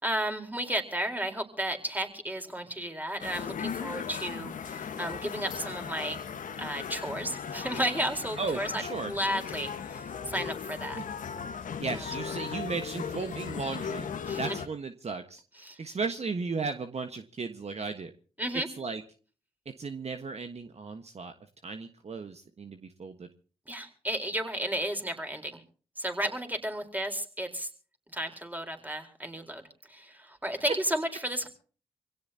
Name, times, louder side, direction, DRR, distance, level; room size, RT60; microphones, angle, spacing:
voice 1, 0.0-6.2 6.6-11.0 11.9-12.0 14.3-14.6 15.6-15.8 18.4-18.7 23.7-25.6 26.0-27.7 28.1-31.5, right 1 dB, 10° right, 5 dB, 4.1 m, -33 dB
sound 1, 3.2-14.7, left 7 dB, 70° left, 1.4 m, -37 dB
voice 2, 8.4-9.1 10.9-11.0 11.8-14.1 14.4-15.4 15.8-18.1 18.8-19.0 19.8-21.3 21.6-23.1, right 4 dB, 50° right, 7 dB, 1.4 m, -35 dB
25.0 x 17.0 x 2.8 m, 0.39 s
supercardioid pair, 40°, 14 cm